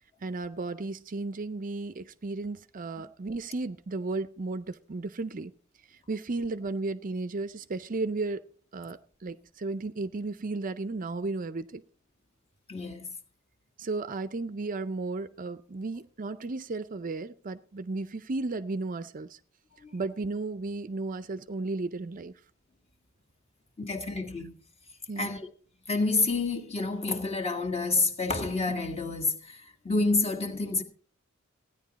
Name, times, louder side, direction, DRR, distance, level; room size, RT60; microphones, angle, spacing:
voice 1, 0.2-5.5 6.1-8.4 8.7-11.8 13.8-19.4 19.9-22.3 25.1-25.3, right 3 dB, 40° right, 0.5 m, -34 dB
voice 2, 12.7-13.1 19.8-19.9 23.8-24.5 25.2-25.5 25.9-30.8, left 3 dB, 30° left, 1.8 m, -29 dB
15.5 x 10.0 x 4.0 m
head